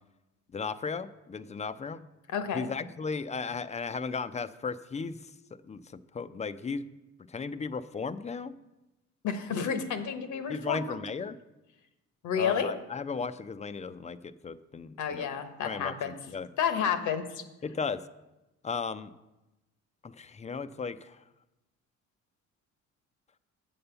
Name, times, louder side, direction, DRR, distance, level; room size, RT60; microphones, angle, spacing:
voice 1, 0.5-2.1 2.5-5.2 5.5-6.8 7.3-8.5 10.5-11.4 12.4-15.3 15.6-16.5 17.6-18.0 18.6-19.1 20.0-21.2, left 5 dB, 25° left, 13 dB, 0.4 m, -36 dB
voice 2, 2.3-2.7 9.2-11.0 12.2-12.7 15.0-16.1 16.6-17.4, left 7 dB, 75° left, 9 dB, 1.0 m, -30 dB
7.7 x 5.5 x 6.8 m, 1.0 s
cardioid pair, 90°, 30 cm